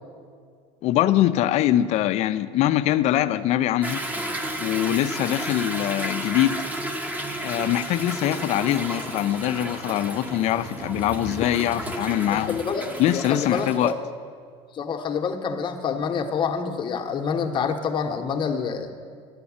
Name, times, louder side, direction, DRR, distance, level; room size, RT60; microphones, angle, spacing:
voice 1, 0.8-4.0 4.6-6.6 7.4-12.6 13.0-13.9, left 12 dB, 50° left, 14 dB, 0.4 m, -23 dB
Toilet flush / Drip / Trickle dribble, 3.8-13.9, right 1 dB, 10° right, 0.8 m, -32 dB
voice 2, 12.3-12.9 13.1-14.0 14.7-18.9, left 6 dB, 35° left, 6 dB, 0.9 m, -27 dB
12.0 x 5.3 x 8.6 m, 2.1 s
cardioid pair, 130°, 14 cm